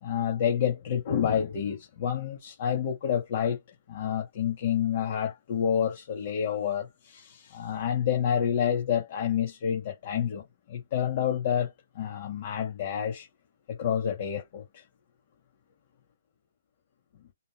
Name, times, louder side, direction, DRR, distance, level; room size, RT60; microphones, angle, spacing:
voice 1, 0.0-3.6 3.9-13.3 13.7-14.8, left 8 dB, 50° left, 2.3 m, -29 dB
6.0 x 3.6 x 2.2 m
hypercardioid pair, 135°, 0 cm